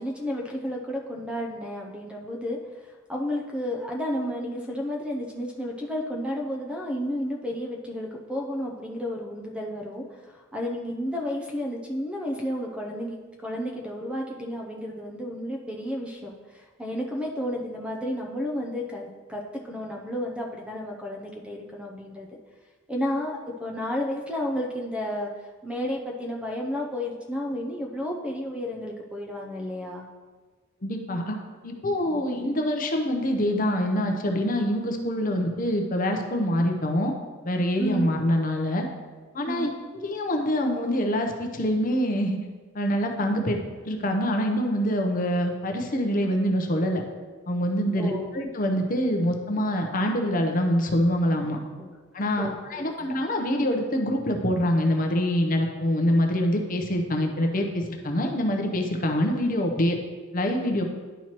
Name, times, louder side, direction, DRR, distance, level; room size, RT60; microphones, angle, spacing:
voice 1, 0.0-22.3 22.9-25.3 25.6-30.1 32.0-32.5 37.8-38.1 39.5-39.7 48.0-48.3 51.8-51.9 52.4-53.1, left 1 dB, 5° right, 0 dB, 0.6 m, -32 dB
voice 2, 30.8-31.4 31.6-37.1 37.4-38.9 39.3-39.7 40.0-42.4 42.7-43.6 43.8-47.0 47.5-51.6 52.1-60.0 60.3-60.8, equal, 40° left, 3 dB, 0.7 m, -25 dB
11.0 x 4.4 x 3.0 m, 1.4 s
head